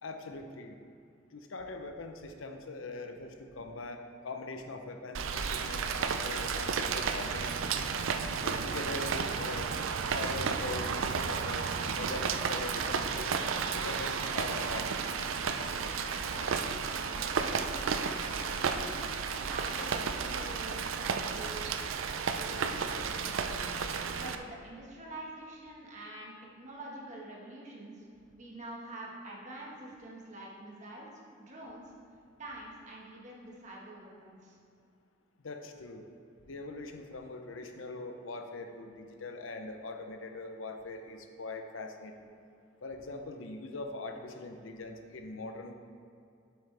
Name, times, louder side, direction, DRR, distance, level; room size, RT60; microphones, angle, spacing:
voice 1, 0.0-0.8 1.3-7.6 8.4-9.7 10.1-13.3 13.7-14.9 35.4-36.0 36.5-42.1 42.8-45.7, left 2 dB, 85° left, 5 dB, 0.7 m, -42 dB
Rain, 5.1-24.3, right 5 dB, 90° right, 0.5 m, -33 dB
voice 2, 16.9-17.9 18.3-21.8 22.1-23.7 24.1-28.0 28.3-31.1 31.4-31.8 32.4-34.6, right 1 dB, 35° right, -4 dB, 1.5 m, -46 dB
8.5 x 7.8 x 3.4 m, 2.5 s
head